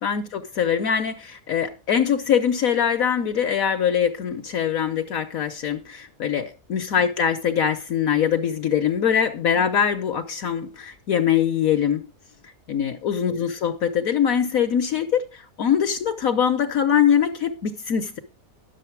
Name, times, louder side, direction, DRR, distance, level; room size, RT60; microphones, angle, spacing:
voice 1, 0.0-12.1 12.7-18.2, left 8 dB, 65° left, 1.3 m, -23 dB
11.0 x 7.3 x 4.5 m
omnidirectional pair, 1.7 m